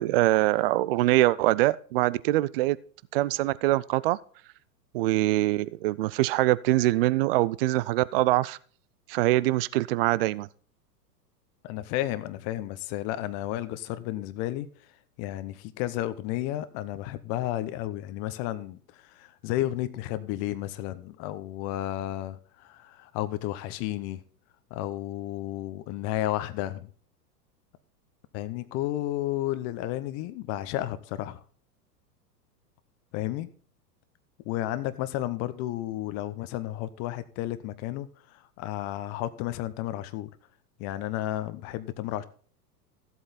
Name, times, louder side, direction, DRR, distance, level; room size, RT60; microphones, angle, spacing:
voice 1, 0.0-2.8 3.1-4.2 4.9-8.6 9.1-10.5, right 17 dB, 40° right, 0.4 m, -24 dB
voice 2, 11.6-14.7 15.2-24.2 24.7-26.9 28.3-31.4 33.1-33.5 34.4-40.3 40.8-42.2, left 14 dB, 30° left, 0.8 m, -32 dB
14.0 x 8.1 x 4.1 m
hypercardioid pair, 110°, 50 cm